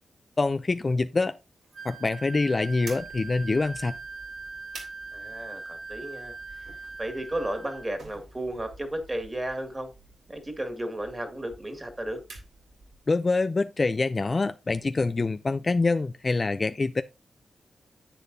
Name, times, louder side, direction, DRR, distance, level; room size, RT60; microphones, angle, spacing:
voice 1, 0.4-1.3 1.8-3.9 13.1-17.0, left 3 dB, 35° left, 0.4 m, -25 dB
Wind instrument woodwind instrument, 1.7-7.9, right 3 dB, 55° right, 2.2 m, -41 dB
sound 1, 2.8-13.1, right 3 dB, 90° right, 3.2 m, -50 dB
voice 2, 5.1-6.7 7.0-9.9 10.3-12.2, right 1 dB, 20° right, 2.0 m, -34 dB
10.0 x 8.3 x 2.7 m
wide cardioid pair, 100°, 0 cm